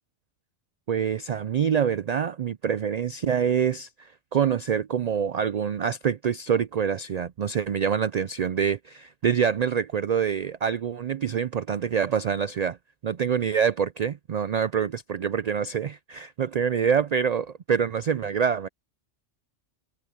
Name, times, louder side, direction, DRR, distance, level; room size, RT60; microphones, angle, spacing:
voice 1, 0.9-12.8 13.0-18.7, right 7 dB, 90° right, 0.3 m, -26 dB
omnidirectional pair, 1.2 m